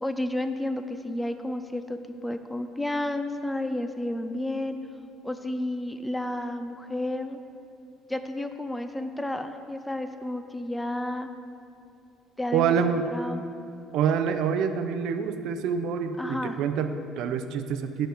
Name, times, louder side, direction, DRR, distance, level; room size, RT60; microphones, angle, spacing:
voice 1, 0.0-4.8 5.2-7.4 8.1-11.3 12.4-12.8 13.1-13.4 16.2-16.6, left 1 dB, 5° left, 8 dB, 0.4 m, -31 dB
voice 2, 12.5-13.0 13.9-18.1, right 7 dB, 65° right, 9 dB, 0.6 m, -26 dB
10.5 x 6.4 x 5.0 m, 2.6 s
cardioid pair, 155°, 0 cm